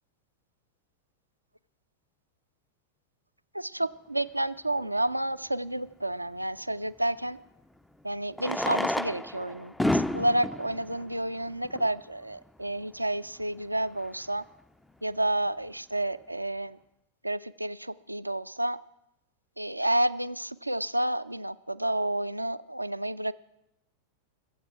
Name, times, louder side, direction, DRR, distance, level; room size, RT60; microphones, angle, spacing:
voice 1, 3.5-7.4 8.0-14.4 15.0-16.8 17.2-18.8 19.6-23.3, right 1 dB, 85° right, 15 dB, 0.4 m, -30 dB
Fireworks, 4.8-4.9 7.1-7.2 8.3-12.1 12.8-12.9 13.1-13.2 13.4-13.5 14.0-14.3, left 1 dB, 5° left, 0.4 m, -31 dB
22.0 x 7.9 x 4.7 m, 0.86 s
figure-of-eight pair, 90°, 0 cm